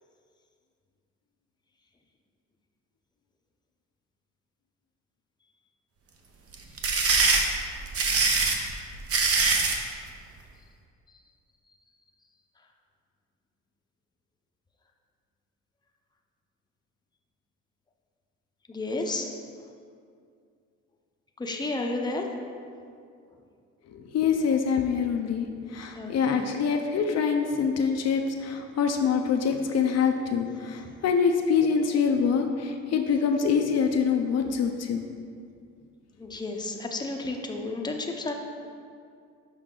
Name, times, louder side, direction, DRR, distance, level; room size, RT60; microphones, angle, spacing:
sound 1, 6.5-9.8, right 4 dB, 50° right, 0.8 m, -23 dB
voice 1, 18.7-19.3 21.4-22.3 25.9-26.5 36.2-38.3, left 2 dB, 15° left, 2 dB, 0.7 m, -32 dB
voice 2, 23.9-35.0, left 6 dB, 55° left, 4 dB, 0.5 m, -25 dB
6.4 x 5.2 x 3.8 m, 2.3 s
cardioid pair, 90°, 30 cm